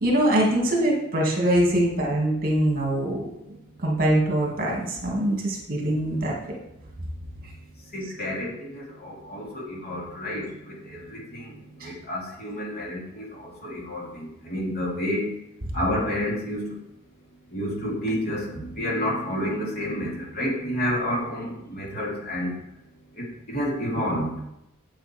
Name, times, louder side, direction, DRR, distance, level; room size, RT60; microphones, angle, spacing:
voice 1, 0.0-3.2 3.8-6.3 11.8-11.9, right 1 dB, 40° right, -2 dB, 2.4 m, -23 dB
voice 2, 7.9-15.2 15.7-16.7 17.5-22.5 23.2-24.4, equal, 45° left, -3 dB, 2.8 m, -30 dB
8.5 x 7.8 x 4.5 m, 0.84 s
head